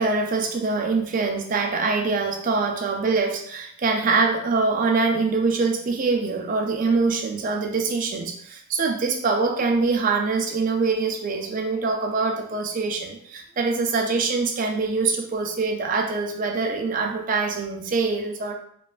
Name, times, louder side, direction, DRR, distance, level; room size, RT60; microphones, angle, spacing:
voice 1, 0.0-18.5, right 4 dB, 35° right, 2 dB, 0.3 m, -24 dB
3.1 x 2.2 x 2.4 m, 0.66 s
head